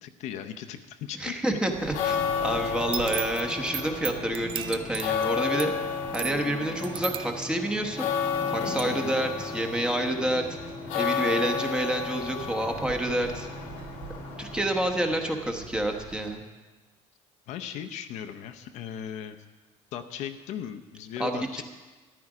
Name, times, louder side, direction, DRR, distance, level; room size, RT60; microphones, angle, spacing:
voice 1, 0.0-1.6 8.9-9.2 14.9-15.0 17.5-19.4 19.9-21.6, left 9 dB, 65° left, 6 dB, 0.8 m, -38 dB
voice 2, 1.2-5.7 6.1-8.1 8.5-10.5 10.9-13.5 14.4-16.4 21.2-21.6, right 1 dB, 5° right, 3 dB, 1.0 m, -28 dB
sound 1, 1.7-15.3, left 6 dB, 90° left, 1.8 m, -32 dB
sound 2, 1.7-16.4, right 7 dB, 80° right, 1.2 m, -46 dB
sound 3, 2.9-8.4 8.8-8.9, right 9 dB, 40° right, 0.6 m, -37 dB
13.5 x 11.0 x 4.9 m, 1.3 s
cardioid pair, 160°, 13 cm